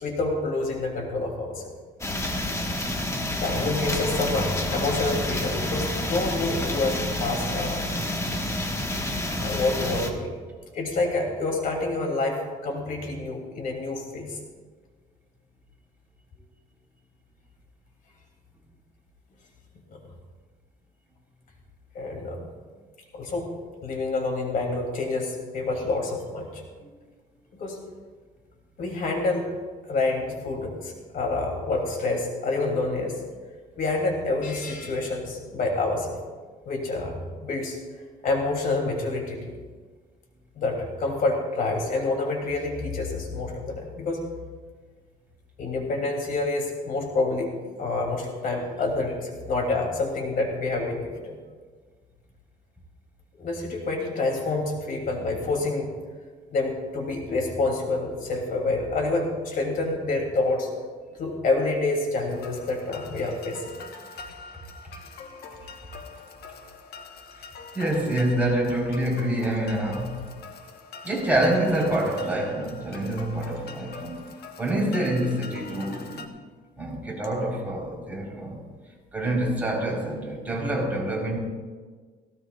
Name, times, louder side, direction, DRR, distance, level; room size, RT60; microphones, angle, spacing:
voice 1, 0.0-1.7 3.3-7.9 9.4-10.4 10.7-14.4 19.9-20.0 21.9-22.5 23.1-23.5 23.8-26.6 27.6-27.8 28.8-29.5 29.9-33.2 33.7-36.2 36.6-37.8 38.2-39.6 40.5-44.2 45.6-47.5 47.8-51.4 53.4-55.9 56.5-60.7 61.2-63.7, left 3 dB, 60° left, 1 dB, 2.9 m, -27 dB
sound 1, 2.0-10.1, left 1 dB, 15° left, 1.5 m, -28 dB
sound 2, 62.3-76.3, left 4 dB, 75° left, 1.3 m, -44 dB
voice 2, 67.7-70.2 71.0-74.2 74.6-76.4 76.8-78.6 79.1-81.4, right 1 dB, 10° right, -3 dB, 4.1 m, -26 dB
17.5 x 17.5 x 2.5 m, 1.5 s
cardioid pair, 120°, 16 cm